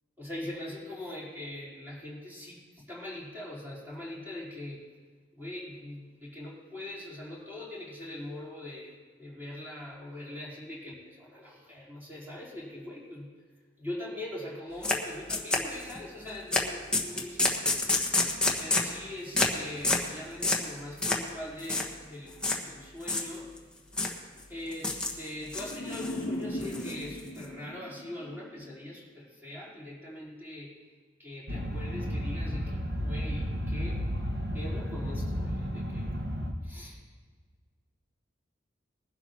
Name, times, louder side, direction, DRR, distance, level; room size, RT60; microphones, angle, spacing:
voice 1, 0.2-4.8 5.3-13.3 13.8-17.6 18.6-23.5 24.5-30.7 31.2-34.0 34.5-36.2 36.6-37.0, left 1 dB, 10° right, -7 dB, 4.0 m, -42 dB
sound 1, 14.8-15.0 15.3-16.0 16.5-16.7 16.9-18.9 19.3-19.6 19.8-20.1 20.4-20.7 21.0-21.3 21.6-21.9 22.4-22.6 23.0-23.6 23.9-24.2 24.7-25.2 25.5-26.2 26.6-27.4, left 2 dB, 5° left, 1.3 m, -28 dB
sound 2, 25.5-28.7, equal, 60° left, 1.1 m, -38 dB
sound 3, 31.5-36.5, equal, 60° right, 1.5 m, -32 dB
21.0 x 12.0 x 3.0 m, 1.5 s
head